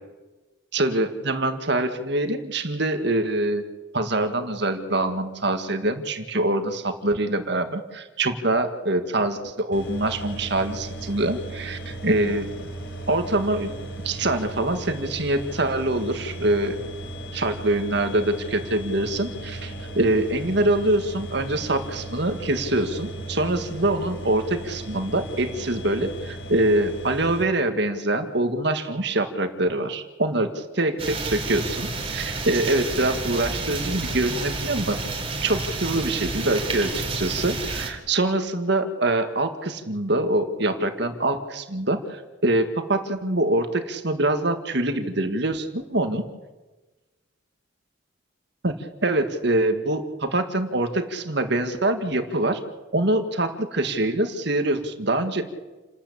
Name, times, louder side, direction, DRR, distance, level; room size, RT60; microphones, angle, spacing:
voice 1, 0.7-3.6 3.9-12.5 13.1-13.7 14.0-16.8 17.3-30.5 30.8-35.0 35.4-46.2 48.6-52.6 52.9-55.4, right 2 dB, 55° right, 8 dB, 1.9 m, -24 dB
sound 1, 9.7-27.4, right 1 dB, 60° left, 4.6 m, -36 dB
sound 2, 31.0-37.9, right 3 dB, 30° right, 3.4 m, -30 dB
29.5 x 13.0 x 8.6 m, 1.2 s
head